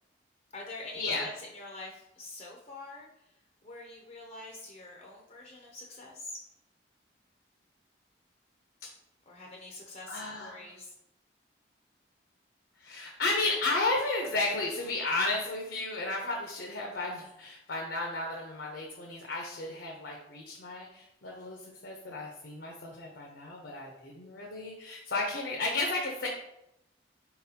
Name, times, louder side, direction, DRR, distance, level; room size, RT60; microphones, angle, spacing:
voice 1, 0.5-3.3 3.6-6.4 9.3-10.9, left 2 dB, 35° left, -1 dB, 0.5 m, -45 dB
voice 2, 10.1-10.6 12.8-26.3, left 2 dB, 75° left, -1 dB, 0.7 m, -33 dB
4.4 x 3.9 x 2.8 m, 0.84 s
head